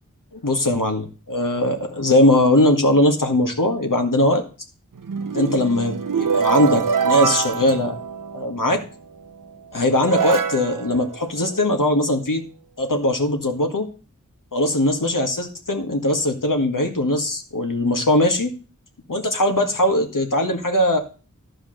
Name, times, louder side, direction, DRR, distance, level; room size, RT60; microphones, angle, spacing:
voice 1, 0.3-4.4 5.3-8.0 8.3-8.9 9.7-12.4 12.8-13.9 14.5-18.5 19.1-21.0, left 1 dB, 80° left, 4 dB, 1.9 m, -20 dB
sound 1, 5.0-8.7 9.5-9.6 10.0-12.0, right 6 dB, 90° right, 0.7 m, -25 dB
12.5 x 5.1 x 6.5 m, 0.36 s
wide cardioid pair, 40°, 31 cm